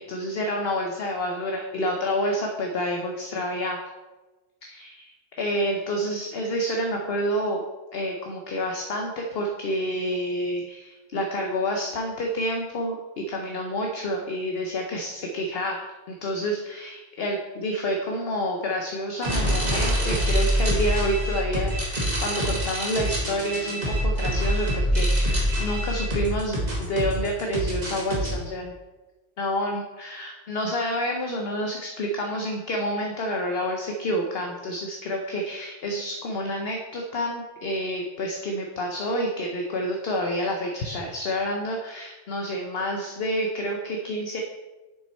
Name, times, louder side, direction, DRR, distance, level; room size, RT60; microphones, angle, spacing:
voice 1, 0.0-3.8 4.6-5.1 5.4-7.6 7.9-13.0 13.3-28.8 29.4-44.4, equal, 55° left, 2 dB, 1.0 m, -28 dB
sound 1, 19.2-28.3, equal, 35° right, 2.2 m, -25 dB
7.4 x 5.7 x 4.3 m, 1.2 s
omnidirectional pair, 1.3 m